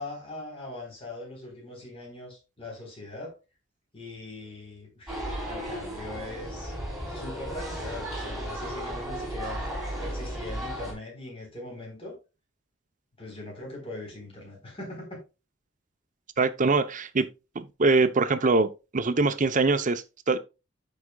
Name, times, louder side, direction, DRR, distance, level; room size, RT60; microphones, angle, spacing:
voice 1, 0.0-3.3 3.9-5.2 5.5-6.7 7.1-9.6 10.0-12.1 13.2-15.2, left 2 dB, 30° left, 3.8 m, -41 dB
sound 1, 5.1-10.9, right 1 dB, ahead, 4.1 m, -34 dB
voice 2, 16.4-17.3 17.6-20.4, right 3 dB, 40° right, 0.7 m, -23 dB
14.0 x 5.0 x 2.3 m
head